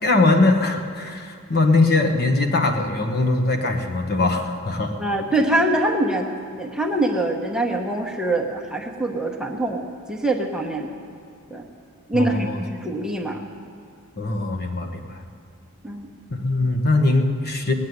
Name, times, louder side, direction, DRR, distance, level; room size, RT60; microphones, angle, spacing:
voice 1, 0.0-4.9 12.1-12.6 14.2-15.2 16.3-17.7, left 2 dB, 45° left, 4 dB, 1.1 m, -21 dB
voice 2, 5.0-10.9 11.5-11.7 12.1-13.5 15.8-16.1, right 1 dB, 5° right, 0 dB, 1.1 m, -24 dB
19.0 x 7.3 x 9.4 m, 2.3 s
head